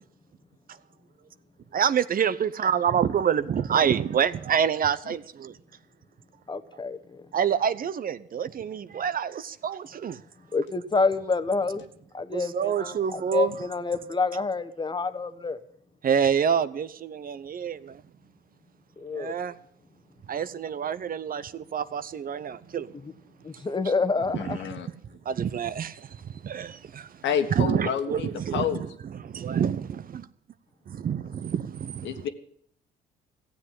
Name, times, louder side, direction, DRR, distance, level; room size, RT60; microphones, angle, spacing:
voice 1, 1.7-5.6 7.3-10.2 12.3-13.5 16.0-18.0 19.1-19.5 20.3-22.9 24.5-24.6 25.2-27.1 27.5-29.9 30.9-32.2, right 8 dB, 50° right, 0.8 m, -27 dB
voice 2, 6.5-7.2 10.5-11.8 12.1-15.6 19.0-19.4 23.4-24.6, left 4 dB, 25° left, 1.2 m, -28 dB
voice 3, 24.3-24.9 27.2-28.8 32.0-32.3, left 8 dB, 75° left, 1.7 m, -29 dB
15.0 x 7.8 x 9.8 m
cardioid pair, 80°, 19 cm